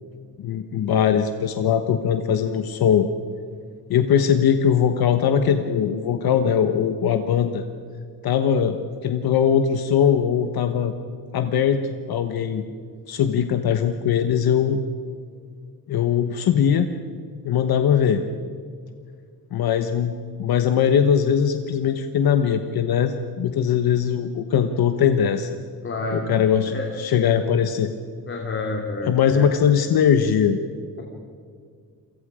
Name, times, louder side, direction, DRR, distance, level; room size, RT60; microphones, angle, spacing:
voice 1, 0.4-3.1 3.9-7.6 8.2-8.8 9.0-10.9 11.3-12.6 13.1-14.8 15.9-16.9 17.4-18.2 19.5-20.1 20.4-25.6 26.1-27.9 29.0-30.6, left 8 dB, 65° left, 7 dB, 1.2 m, -20 dB
voice 2, 25.8-26.2 26.7-26.9 28.3-29.5, left 3 dB, 30° left, 0 dB, 2.7 m, -29 dB
29.0 x 24.0 x 5.0 m, 2.1 s
wide cardioid pair, 175°, 39 cm